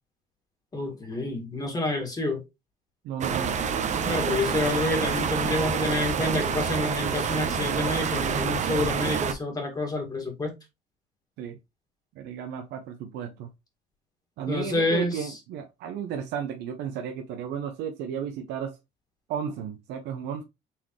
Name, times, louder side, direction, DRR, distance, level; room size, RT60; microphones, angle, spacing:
voice 1, 0.7-2.4 4.0-10.5 14.5-15.3, left 2 dB, 20° left, 2.0 m, -28 dB
voice 2, 3.0-3.6 11.4-11.6 12.2-13.5 14.4-18.8 19.3-20.4, right 8 dB, 85° right, 0.7 m, -33 dB
sound 1, 3.2-9.3, right 7 dB, 45° right, 0.8 m, -27 dB
4.3 x 3.6 x 3.1 m
cardioid pair, 110°, 17 cm